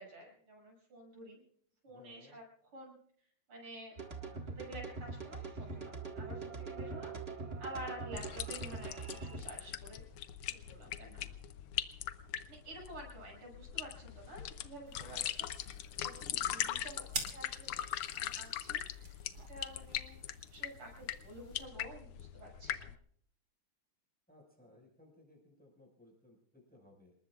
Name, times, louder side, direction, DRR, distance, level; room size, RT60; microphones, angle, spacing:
voice 1, 0.0-1.4 1.8-2.4 2.7-3.0 3.5-7.3 7.6-10.0 10.4-11.2 12.5-17.7 18.1-19.2 19.5-20.2 20.5-22.9, right 1 dB, 80° right, -1 dB, 8.0 m, -50 dB
voice 2, 1.9-2.4 10.8-11.3 16.1-16.6 24.3-27.1, left 1 dB, 5° left, -1 dB, 5.4 m, -61 dB
sound 1, 4.0-9.4, right 4 dB, 30° right, 1.8 m, -43 dB
sound 2, 8.2-23.0, left 11 dB, 80° left, 1.7 m, -41 dB
sound 3, 14.9-21.7, right 3 dB, 45° right, 3.1 m, -49 dB
27.5 x 20.5 x 2.4 m, 0.62 s
omnidirectional pair, 2.4 m